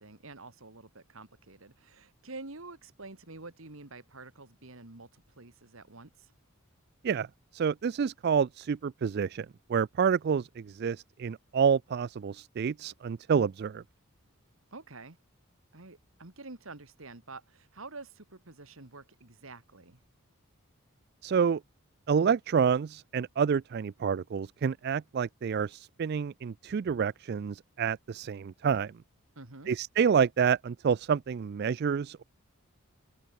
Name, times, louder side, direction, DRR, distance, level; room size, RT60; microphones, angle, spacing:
voice 1, 0.0-6.3 14.7-15.2 15.7-20.0 29.4-29.7, right 3 dB, 70° right, 2.2 m, -48 dB
voice 2, 7.5-13.8 21.2-21.6 22.1-28.9 29.7-32.2, right 6 dB, 50° right, 0.3 m, -28 dB
head